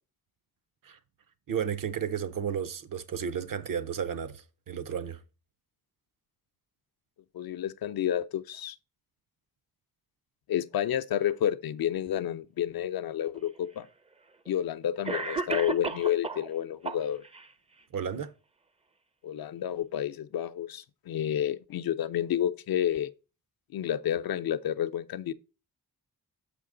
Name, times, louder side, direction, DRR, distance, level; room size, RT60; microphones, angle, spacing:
voice 1, 1.5-5.2 17.9-18.3, right 7 dB, 65° right, 0.6 m, -33 dB
voice 2, 7.3-8.8 10.5-13.9 14.5-17.2 19.2-23.1 23.7-25.3, left 10 dB, 75° left, 0.5 m, -30 dB
Cough, 13.4-13.5 14.5-14.6 15.1-16.5 16.8-17.5, right 4 dB, 20° right, 0.4 m, -33 dB
6.6 x 5.1 x 3.7 m
wide cardioid pair, 115°, 36 cm